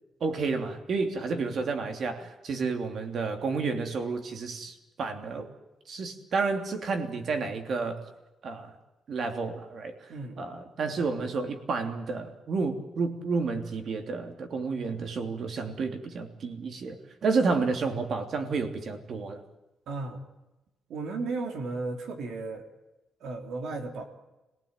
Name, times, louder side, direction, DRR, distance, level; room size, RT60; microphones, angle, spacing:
voice 1, 0.2-5.5 5.9-8.0 8.4-8.7 9.1-9.9 10.4-19.4, right 4 dB, 55° right, 5 dB, 3.2 m, -30 dB
voice 2, 10.1-10.4 19.9-20.2 20.9-22.6 23.2-24.0, right 3 dB, 80° right, 4 dB, 3.4 m, -34 dB
26.5 x 18.0 x 9.0 m, 1.0 s
cardioid pair, 120°, 0 cm